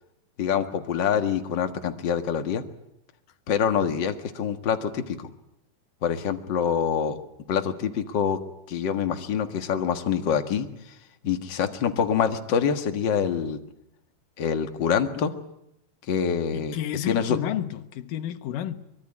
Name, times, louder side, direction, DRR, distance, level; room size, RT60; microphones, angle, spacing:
voice 1, 0.4-2.6 3.5-5.3 6.0-7.2 7.5-8.4 8.7-10.9 11.2-13.6 14.4-15.3 16.1-16.8 17.1-17.4, left 7 dB, 45° left, 1.8 m, -25 dB
voice 2, 16.5-18.8, left 11 dB, 90° left, 2.9 m, -31 dB
24.0 x 22.5 x 9.8 m
omnidirectional pair, 3.7 m